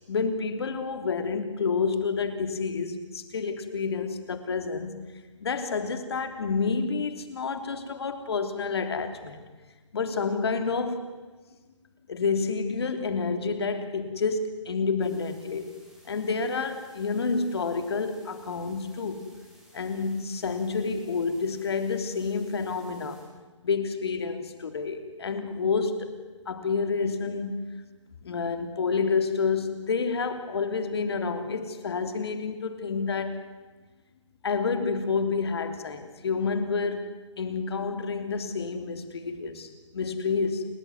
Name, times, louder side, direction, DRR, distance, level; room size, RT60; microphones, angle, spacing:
voice 1, 0.0-5.1 5.4-9.4 9.9-11.1 12.1-15.8 16.0-19.2 19.7-23.2 23.6-26.1 26.4-27.7 28.2-33.4 34.4-37.1 37.4-40.7, left 4 dB, 55° left, 8 dB, 3.2 m, -29 dB
sound 1, 15.0-23.2, right 1 dB, 5° right, 5.7 m, -58 dB
30.0 x 13.5 x 9.6 m, 1.3 s
figure-of-eight pair, 145°, 16 cm